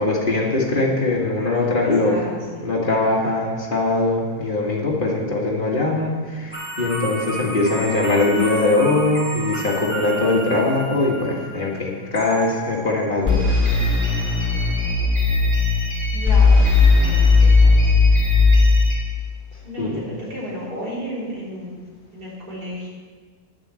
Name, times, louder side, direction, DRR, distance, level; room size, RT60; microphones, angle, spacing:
voice 1, 0.0-2.3 2.6-13.5 19.8-20.0, left 2 dB, 30° left, -3 dB, 2.1 m, -21 dB
voice 2, 1.6-2.7 16.1-17.9 19.6-21.7 22.1-22.9, equal, 80° right, -7 dB, 4.3 m, -33 dB
sound 1, 6.5-11.4 12.1-12.9 13.3-18.9, left 3 dB, 5° left, 3.0 m, -19 dB
10.0 x 7.4 x 7.7 m, 1.5 s
omnidirectional pair, 1.7 m